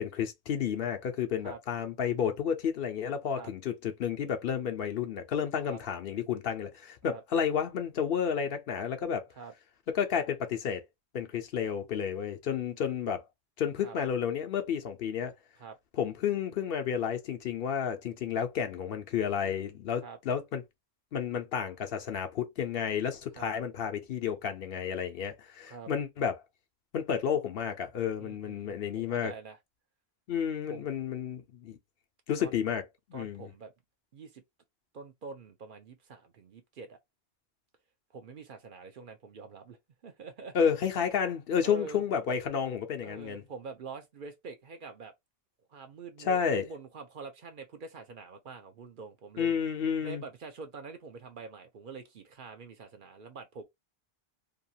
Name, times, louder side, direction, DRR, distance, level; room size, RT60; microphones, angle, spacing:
voice 1, 0.0-9.3 9.9-10.8 11.1-13.2 13.6-15.3 16.0-20.6 21.1-26.4 26.9-29.3 30.3-31.8 32.3-32.8 33.1-33.5 40.5-43.4 46.2-46.6 49.4-50.2, left 7 dB, 70° left, 0.8 m, -31 dB
voice 2, 28.2-29.6 30.7-30.9 32.4-32.6 33.1-33.7 34.1-34.4 34.9-37.0 38.1-40.7 41.6-42.0 43.0-45.1 45.7-49.5 50.0-53.6, right 4 dB, 60° right, 0.7 m, -45 dB
2.8 x 2.3 x 2.6 m
omnidirectional pair, 1.1 m